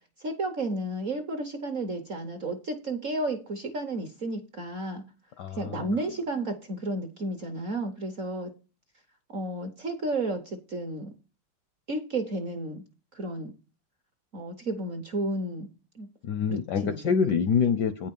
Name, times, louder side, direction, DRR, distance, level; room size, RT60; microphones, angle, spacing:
voice 1, 0.2-5.0 5.6-8.5 9.3-11.1 11.9-12.8 13.1-13.5 14.3-15.7 16.0-16.1 16.5-17.1, right 2 dB, 55° right, 7 dB, 0.9 m, -32 dB
voice 2, 5.4-6.0 16.2-18.1, left 6 dB, 75° left, 10 dB, 1.0 m, -26 dB
9.1 x 5.4 x 5.3 m, 0.33 s
omnidirectional pair, 2.4 m